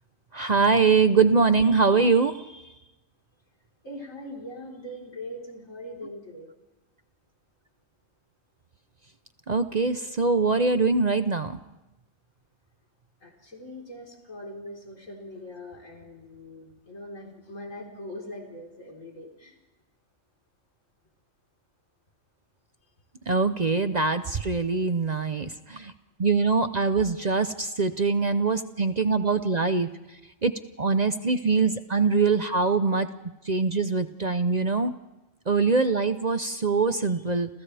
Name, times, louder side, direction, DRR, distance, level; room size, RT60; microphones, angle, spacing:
voice 1, 0.3-2.6 9.5-11.6 23.3-25.9 26.2-29.9 30.4-30.5 30.8-33.1 33.4-34.9 35.5-37.5, right 4 dB, 40° right, 9 dB, 0.8 m, -23 dB
voice 2, 3.8-6.5 13.2-19.5, left 1 dB, 85° left, -1 dB, 4.6 m, -41 dB
30.0 x 28.0 x 3.4 m, 1.0 s
omnidirectional pair, 1.3 m